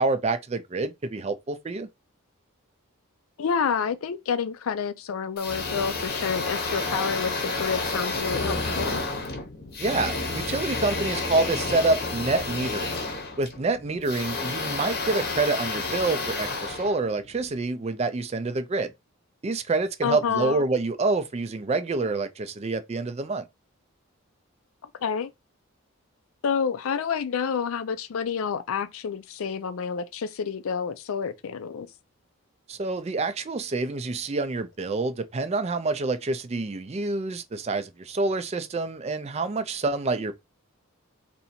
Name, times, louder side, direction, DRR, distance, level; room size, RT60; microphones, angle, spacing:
voice 1, 0.0-1.9 9.8-12.9 13.4-18.9 19.4-23.4 32.7-40.3, right 3 dB, 30° right, 0.3 m, -27 dB
voice 2, 3.4-9.0 20.0-20.6 25.0-25.3 26.4-31.9, left 6 dB, 70° left, 0.4 m, -29 dB
sound 1, 5.4-17.6, left 3 dB, 45° left, 0.8 m, -30 dB
2.8 x 2.6 x 4.2 m
head